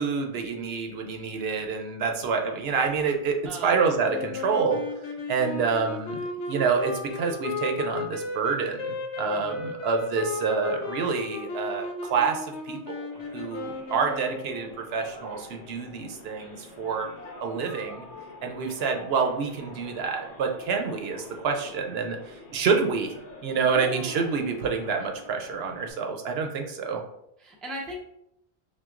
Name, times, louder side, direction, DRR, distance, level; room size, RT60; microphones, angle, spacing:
voice 1, 0.0-4.8 5.3-17.1 17.4-18.0 18.4-23.1 23.4-27.0, right 5 dB, 75° right, 3 dB, 0.8 m, -28 dB
sound 1, 4.0-14.8, left 3 dB, 85° left, 0.9 m, -35 dB
voice 2, 9.2-9.6 23.5-24.4 27.4-28.0, left 1 dB, ahead, -1 dB, 0.4 m, -38 dB
sound 2, 13.1-25.9, left 2 dB, 65° left, 1.0 m, -46 dB
5.8 x 2.2 x 2.4 m, 0.78 s
omnidirectional pair, 1.1 m